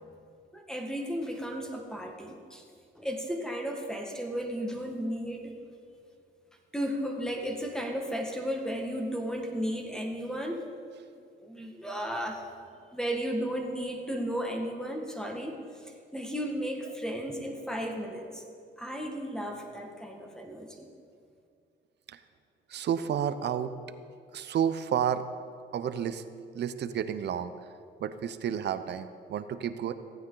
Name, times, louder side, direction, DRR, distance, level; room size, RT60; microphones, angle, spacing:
voice 1, 0.5-2.6 2.9-5.5 6.7-10.6 11.4-12.5 12.9-18.4 18.8-20.9, equal, 5° left, 2 dB, 1.6 m, -34 dB
voice 2, 22.7-23.7 24.3-25.2 25.7-26.2 26.5-27.5 28.0-29.9, right 9 dB, 60° right, 12 dB, 0.7 m, -31 dB
15.5 x 9.2 x 3.9 m, 2.3 s
cardioid pair, 90°, 20 cm